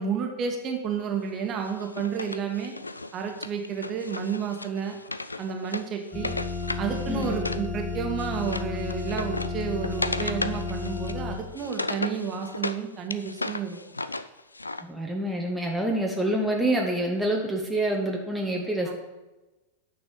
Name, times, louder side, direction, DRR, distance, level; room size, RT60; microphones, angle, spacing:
voice 1, 0.0-2.7 3.1-5.0 5.4-6.3 6.8-13.8 18.8-18.9, right 6 dB, 30° right, 3 dB, 1.6 m, -31 dB
Wood, 1.6-7.7 7.9-12.8 13.1-14.8, left 2 dB, 80° left, 0.4 m, -35 dB
sound 1, 6.1-11.3, left 4 dB, 25° left, 1.9 m, -32 dB
voice 2, 7.1-7.4 14.8-18.9, right 1 dB, 5° right, -1 dB, 1.2 m, -27 dB
9.6 x 6.0 x 5.5 m, 1.1 s
figure-of-eight pair, 90°, 0 cm